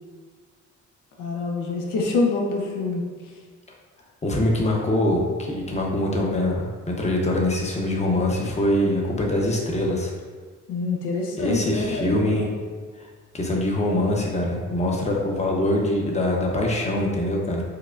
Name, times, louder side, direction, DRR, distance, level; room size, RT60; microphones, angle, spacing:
voice 1, 1.2-3.0 10.7-12.2, left 3 dB, 85° left, 0 dB, 0.7 m, -25 dB
voice 2, 4.2-6.7 7.0-10.1 11.4-12.5 13.3-17.6, left 1 dB, 20° left, -1 dB, 0.7 m, -23 dB
4.6 x 2.1 x 2.4 m, 1.5 s
cardioid pair, 90°, 30 cm